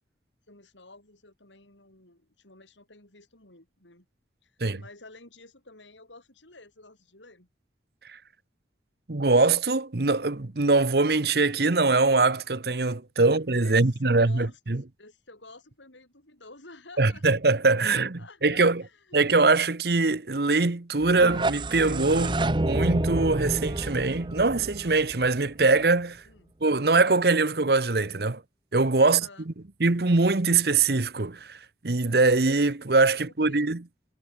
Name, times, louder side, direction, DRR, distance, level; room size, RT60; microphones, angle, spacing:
voice 1, 0.5-4.1 4.4-7.5 13.2-13.3 13.6-14.6 15.0-17.2 18.2-19.2 26.3-26.5 29.0-29.5 33.1-33.2 33.4-33.7, left 2 dB, 90° left, 7.5 m, -51 dB
voice 2, 9.1-14.8 17.0-18.8 19.1-26.2 26.6-28.4 28.7-29.5 29.8-33.8, right 3 dB, 60° right, 1.0 m, -23 dB
sound 1, 21.0-25.9, right 2 dB, 25° right, 0.9 m, -29 dB
head